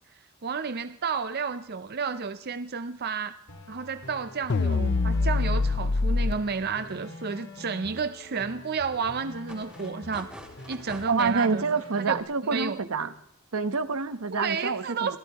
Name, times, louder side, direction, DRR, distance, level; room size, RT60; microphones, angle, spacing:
voice 1, 0.4-3.4 3.7-10.3 10.7-11.6 12.1-12.8 14.3-15.2, right 5 dB, 45° right, 11 dB, 0.6 m, -31 dB
sound 1, 3.5-12.2, left 1 dB, 85° left, 5.0 m, -45 dB
sound 2, 4.5-6.3, left 3 dB, 50° left, 0.5 m, -24 dB
sound 3, 9.5-11.3 13.7-13.8, equal, 5° right, 3.5 m, -45 dB
voice 2, 11.1-13.1 13.5-15.2, right 4 dB, 70° right, 12 dB, 1.0 m, -27 dB
26.0 x 17.5 x 3.0 m, 0.80 s
head